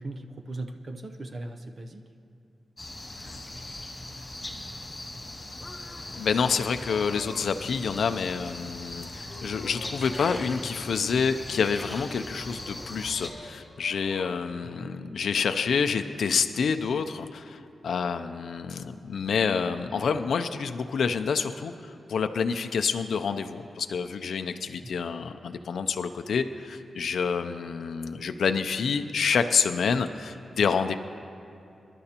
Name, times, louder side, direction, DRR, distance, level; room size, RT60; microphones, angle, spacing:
voice 1, 0.0-2.0 14.6-15.0 24.8-24.9, right 2 dB, 40° right, 5 dB, 0.6 m, -39 dB
sound 1, 2.8-13.3, left 2 dB, 20° left, 2.0 m, -40 dB
sound 2, 5.6-7.5 8.0-8.5 8.9-10.5 10.8-11.5 12.1-14.4, left 2 dB, 35° left, 1.2 m, -48 dB
voice 2, 6.1-30.9, left 6 dB, 75° left, 8 dB, 0.4 m, -28 dB
sound 3, 8.9-13.5 14.3-14.5, left 1 dB, 5° right, 1.3 m, -47 dB
26.5 x 11.5 x 2.9 m, 2.7 s
wide cardioid pair, 140°, 0 cm